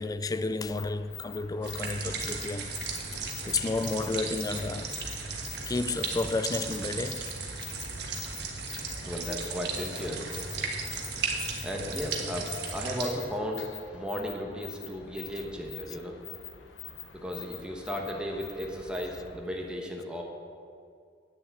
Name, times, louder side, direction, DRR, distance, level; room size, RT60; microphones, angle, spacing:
voice 1, 0.0-2.7 3.2-5.0 5.7-7.3, left 3 dB, 20° left, 0.3 m, -31 dB
sound 1, 0.5-19.4, left 8 dB, 75° left, 0.9 m, -45 dB
sound 2, 1.6-13.1, right 4 dB, 65° right, 1.4 m, -36 dB
voice 2, 9.0-10.2 11.6-16.1 17.2-20.2, equal, 5° right, 1.2 m, -35 dB
9.9 x 6.8 x 7.9 m
head